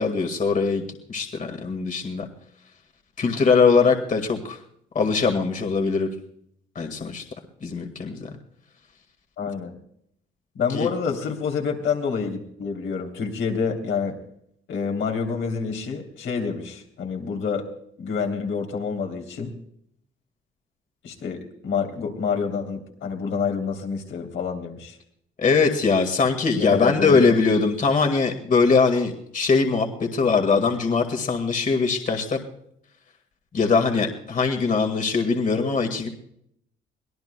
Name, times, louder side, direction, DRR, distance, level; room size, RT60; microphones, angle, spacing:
voice 1, 0.0-2.3 3.2-4.6 4.9-6.1 6.8-7.2 7.6-8.3 10.7-10.9 25.4-32.4 33.5-36.1, left 4 dB, 40° left, 4 dB, 2.0 m, -21 dB
voice 2, 9.4-9.7 10.5-14.2 14.7-17.7 18.0-19.5 21.0-25.0 26.5-27.3, left 5 dB, 80° left, 2 dB, 3.2 m, -27 dB
24.0 x 17.5 x 2.3 m, 0.70 s
cardioid pair, 90°, 20 cm